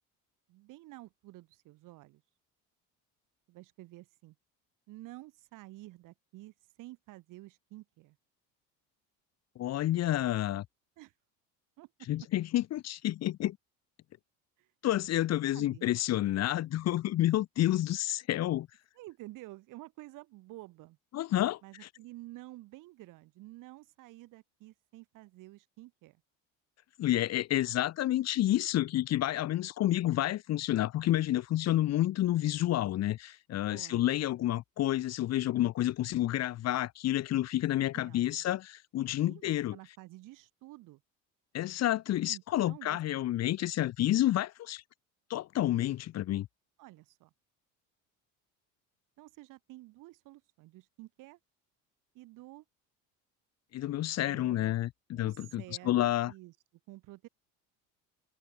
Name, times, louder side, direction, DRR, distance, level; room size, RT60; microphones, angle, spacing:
voice 1, 0.5-2.2 3.5-4.3 4.9-8.2 11.0-11.1 11.8-11.9 14.6-14.7 15.4-15.9 18.9-21.0 21.6-26.2 33.7-34.2 37.8-38.4 39.2-41.0 42.3-43.0 46.8-47.3 49.2-51.4 52.1-52.6 54.2-54.8 55.2-56.5 56.9-57.3, right 18 dB, 65° right, 7.9 m, -51 dB
voice 2, 9.5-10.6 12.1-13.6 14.8-18.7 21.1-21.6 27.0-39.8 41.5-44.8 45.3-46.5 53.7-56.3, left 14 dB, 50° left, 1.7 m, -29 dB
open air
cardioid pair, 125°, 34 cm